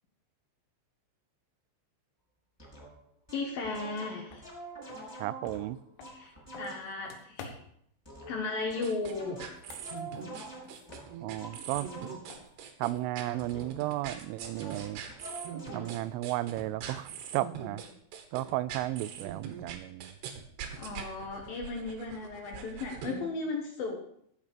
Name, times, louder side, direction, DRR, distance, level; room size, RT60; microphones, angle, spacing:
sound 1, 2.6-2.9 3.3-7.0 8.0-12.5 13.4-13.8 14.1-15.9, right 2 dB, 5° left, 3.1 m, -46 dB
voice 1, 3.3-4.4 6.1-7.5 8.3-9.4 20.8-24.0, left 3 dB, 65° left, 2 dB, 2.5 m, -35 dB
sound 2, 4.3-4.4 4.9-7.9 9.4-11.5 11.7-14.8, left 5 dB, 85° left, 4.0 m, -52 dB
voice 2, 5.2-5.8 11.2-12.1 12.8-15.0 15.7-17.8 18.3-20.1, right 16 dB, 90° right, 16 dB, 3.1 m, -34 dB
sound 3, 8.8-23.2, right 7 dB, 70° right, 3.2 m, -43 dB
14.5 x 6.1 x 6.7 m, 0.70 s
omnidirectional pair, 5.5 m